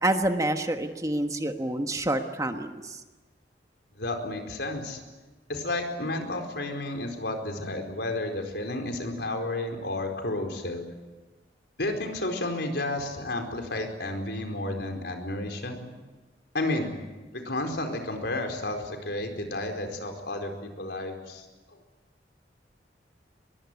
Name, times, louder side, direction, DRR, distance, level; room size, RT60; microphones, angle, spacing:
voice 1, 0.0-3.0, right 1 dB, 20° right, 6 dB, 1.4 m, -27 dB
voice 2, 4.0-5.0 5.5-10.9 11.8-15.8 16.5-16.9 17.3-21.4, left 2 dB, 70° left, 4 dB, 4.6 m, -31 dB
23.5 x 22.5 x 9.8 m, 1.2 s
head